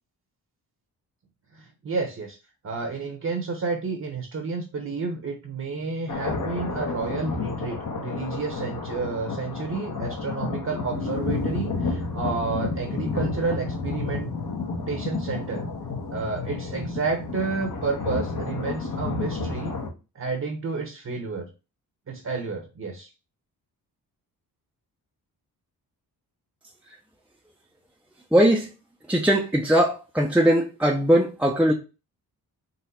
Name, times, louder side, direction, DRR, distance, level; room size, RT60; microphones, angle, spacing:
voice 1, 1.5-2.4 2.6-14.3 14.9-15.7 16.1-19.7 20.1-21.5 22.1-23.1, right 4 dB, 45° right, 1.1 m, -30 dB
sound 1, 6.1-19.9, left 4 dB, 50° left, 1.3 m, -31 dB
voice 2, 28.3-28.7 29.1-31.7, equal, 5° right, 0.7 m, -20 dB
4.0 x 2.5 x 4.3 m
cardioid pair, 60°, 39 cm